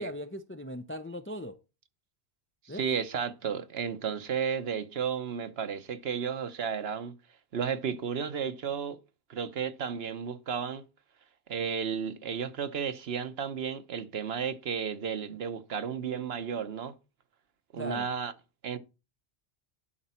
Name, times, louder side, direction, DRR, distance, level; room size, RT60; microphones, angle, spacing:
voice 1, 0.0-1.6 2.7-2.8 17.8-18.1, equal, 20° left, 0.4 m, -38 dB
voice 2, 2.7-7.2 7.5-9.0 9.3-10.8 11.5-17.0 17.7-18.3 18.6-18.8, right 7 dB, 65° right, 1.1 m, -33 dB
11.5 x 5.3 x 4.3 m
omnidirectional pair, 1.1 m